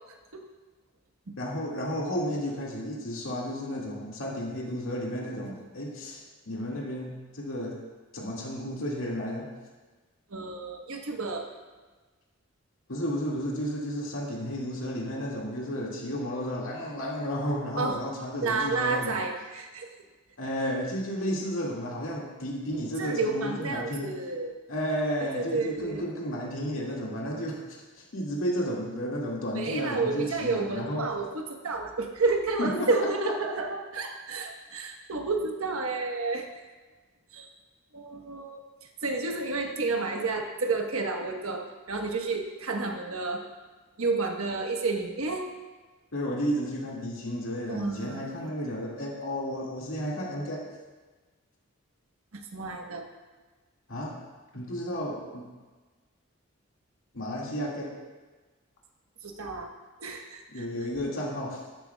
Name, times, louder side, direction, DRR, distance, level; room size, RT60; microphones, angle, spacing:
voice 1, 1.4-7.8 8.1-9.5 12.9-19.2 20.4-24.1 24.7-27.6 28.1-31.1 32.6-33.1 46.1-50.6 53.9-54.2 54.5-55.5 57.1-57.9 60.5-61.6, equal, 75° left, -4 dB, 2.0 m, -32 dB
voice 2, 10.3-11.5 17.8-18.0 18.4-19.9 23.0-24.5 25.2-26.1 29.5-36.5 37.3-37.5 37.9-38.6 39.0-43.4 44.0-45.5 47.7-48.5 52.5-53.0 59.2-59.7 60.0-60.6, right 3 dB, 85° right, 3 dB, 1.2 m, -30 dB
13.5 x 11.5 x 2.3 m, 1.3 s
head